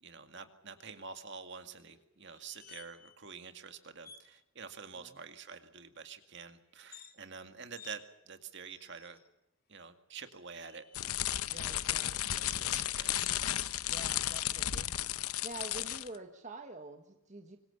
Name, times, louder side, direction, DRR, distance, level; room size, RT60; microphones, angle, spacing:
voice 1, 0.0-9.2 9.7-10.8 11.5-13.2, right 5 dB, 50° right, 8 dB, 2.1 m, -48 dB
sound 1, 2.3-3.2 3.5-3.6 4.0-4.3 6.8-7.1 7.7-8.0 8.7-9.3 10.2-11.0 12.9-14.5 15.9-16.1, left 8 dB, 40° left, 2.4 m, -56 dB
sound 2, 10.9-16.2, left 12 dB, 80° left, 0.8 m, -34 dB
voice 2, 11.5-12.2 12.6-12.8 13.9-14.9 15.4-17.6, right 2 dB, 35° right, 5 dB, 1.4 m, -47 dB
25.0 x 21.5 x 7.0 m, 0.92 s
head